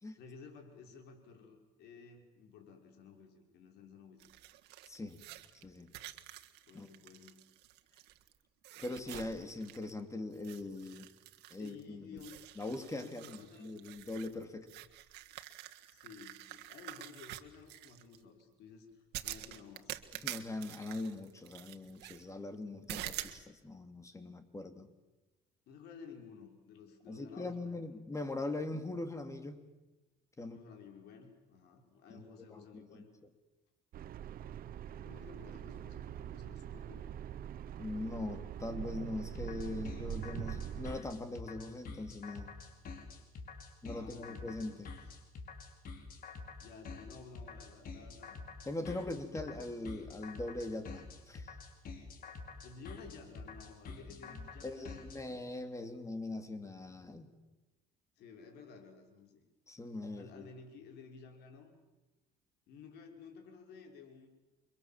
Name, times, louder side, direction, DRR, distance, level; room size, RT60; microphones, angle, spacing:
voice 1, 0.1-4.3 6.7-7.5 8.8-9.2 11.6-12.4 12.9-13.7 15.9-20.0 25.7-27.9 30.4-33.1 35.0-37.2 43.9-45.1 46.6-48.4 48.7-49.6 52.6-55.5 58.2-59.4 60.1-61.8 62.7-64.3, left 5 dB, 75° left, 4 dB, 5.7 m, -54 dB
sound 1, 4.2-8.3 8.6-10.0 10.3-11.8 12.2-18.2 19.1-22.2 22.9-23.4, right 15 dB, 90° right, 1.7 m, -47 dB
voice 2, 4.9-5.2 5.6-5.9 6.7-6.9 8.8-11.1 11.5-12.2 12.6-14.7 20.2-24.9 27.1-29.6 30.4-30.6 32.1-32.2 32.5-33.1 37.8-42.5 43.8-44.9 48.7-51.5 54.6-57.3 59.7-60.5, left 2 dB, 20° left, 8 dB, 2.9 m, -41 dB
sound 2, 33.9-41.0, right 10 dB, 60° right, 1.0 m, -43 dB
sound 3, 39.3-55.2, left 4 dB, 60° left, 5.1 m, -47 dB
30.0 x 24.5 x 7.6 m, 1.1 s
cardioid pair, 110°, 17 cm